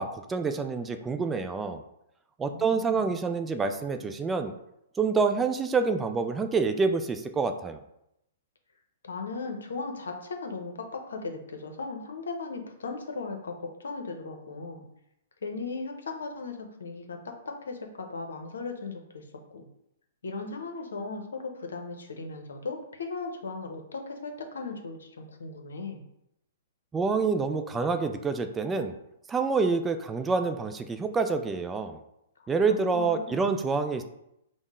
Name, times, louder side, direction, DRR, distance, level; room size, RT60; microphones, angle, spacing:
voice 1, 0.0-1.8 2.4-4.5 5.0-7.8 26.9-28.9 29.3-32.0 32.5-34.0, right 4 dB, 15° right, 8 dB, 0.3 m, -27 dB
voice 2, 2.5-3.1 9.0-14.9 15.4-17.2 17.4-19.2 19.5-19.7 20.2-26.0 32.4-32.5 32.9-33.6, left 3 dB, 75° left, 4 dB, 0.7 m, -37 dB
5.3 x 2.1 x 3.6 m, 0.82 s
hypercardioid pair, 120°, 0 cm